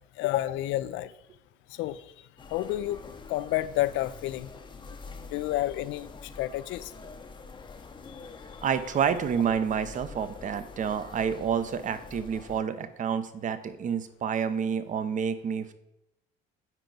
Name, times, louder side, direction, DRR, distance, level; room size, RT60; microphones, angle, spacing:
voice 1, 0.2-1.1 1.7-2.0 2.5-3.0 3.3-4.5 5.3-6.9 8.1-8.2, left 15 dB, 65° left, 15 dB, 0.4 m, -30 dB
sound 1, 2.4-12.6, left 4 dB, 25° left, 0.7 m, -46 dB
voice 2, 8.6-15.7, right 7 dB, 40° right, 12 dB, 0.6 m, -29 dB
9.1 x 4.5 x 3.9 m, 0.86 s
supercardioid pair, 105°, 21 cm